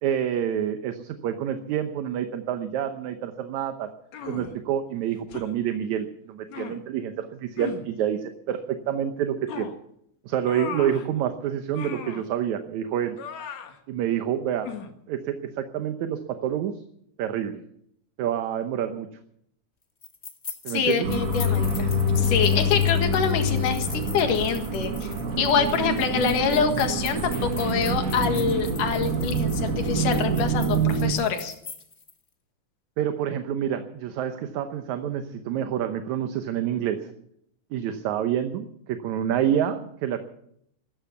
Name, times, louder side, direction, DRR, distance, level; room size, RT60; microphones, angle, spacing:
voice 1, 0.0-3.9 4.3-9.7 10.3-13.2 13.9-14.7 15.1-16.8 17.2-17.6 18.2-19.1 20.6-21.1 33.0-37.1 37.7-40.3, right 9 dB, 70° right, 8 dB, 2.2 m, -28 dB
sound 1, 4.1-4.6 5.3-5.5 6.5-6.8 7.6-7.9 9.5-9.8 10.5-11.1 11.7-12.3 13.2-13.8 14.6-14.9, left 8 dB, 65° left, 2.6 m, -37 dB
sound 2, 20.0-32.1, left 4 dB, 35° left, 1.2 m, -42 dB
voice 2, 20.7-31.5, left 6 dB, 80° left, 6 dB, 3.3 m, -25 dB
sound 3, 21.0-31.1, equal, 45° right, 1.1 m, -26 dB
15.0 x 13.5 x 7.0 m, 0.72 s
omnidirectional pair, 3.6 m